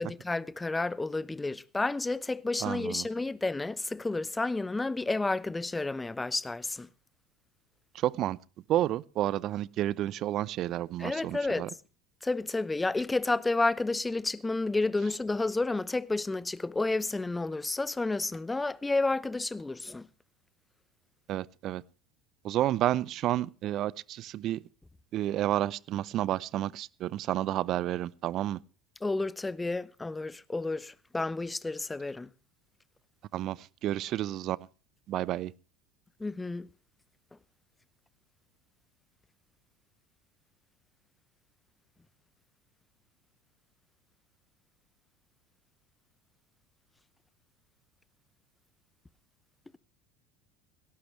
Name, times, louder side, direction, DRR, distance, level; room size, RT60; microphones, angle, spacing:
voice 1, 0.0-6.9 11.0-11.7 12.2-20.1 29.0-32.3 36.2-36.7, left 3 dB, 15° left, 0.8 m, -31 dB
voice 2, 2.6-3.1 7.9-8.4 8.7-11.7 21.3-21.8 22.4-24.6 25.1-28.6 33.3-34.6 35.1-35.5, right 13 dB, 50° right, 0.7 m, -30 dB
18.0 x 17.0 x 3.3 m
hypercardioid pair, 75°, 0 cm